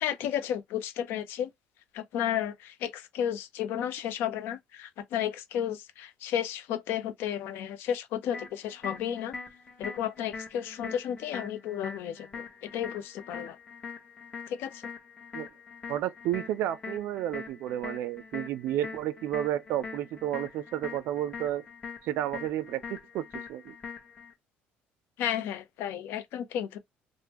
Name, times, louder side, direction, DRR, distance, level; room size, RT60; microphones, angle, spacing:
voice 1, 0.0-1.5 1.9-9.3 9.8-13.6 14.5-14.8 25.2-26.8, left 10 dB, 70° left, 0.6 m, -33 dB
sound 1, 8.3-24.3, left 5 dB, 25° left, 1.0 m, -43 dB
voice 2, 15.9-21.6 22.0-23.7, right 12 dB, 65° right, 0.4 m, -32 dB
3.4 x 2.1 x 2.9 m
cardioid pair, 150°, 4 cm